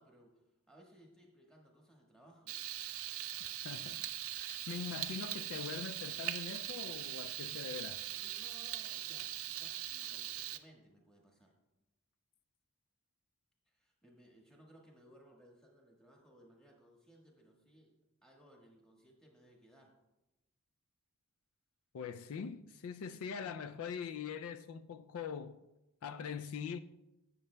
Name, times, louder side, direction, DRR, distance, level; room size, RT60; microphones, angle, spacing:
voice 1, 0.0-2.6 7.6-11.5 13.6-18.0 18.2-20.0 23.0-23.2, right 1 dB, 5° left, 1.4 m, -62 dB
Frying (food), 2.5-10.6, right 13 dB, 70° right, 0.5 m, -41 dB
voice 2, 3.4-4.0 4.3-8.0 21.9-25.6 26.0-26.8, left 6 dB, 70° left, 0.3 m, -43 dB
16.0 x 6.6 x 2.2 m
head